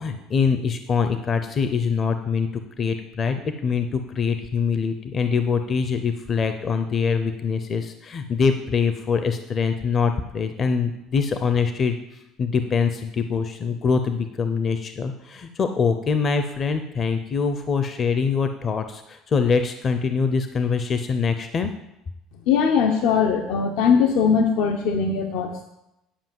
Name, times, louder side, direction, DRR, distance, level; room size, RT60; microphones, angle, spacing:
voice 1, 0.0-2.5 2.8-12.0 12.4-21.7, left 5 dB, 30° left, 8 dB, 0.6 m, -24 dB
voice 2, 22.5-25.6, left 6 dB, 70° left, 4 dB, 0.9 m, -20 dB
10.0 x 5.3 x 7.6 m, 0.87 s
cardioid pair, 135°, 0 cm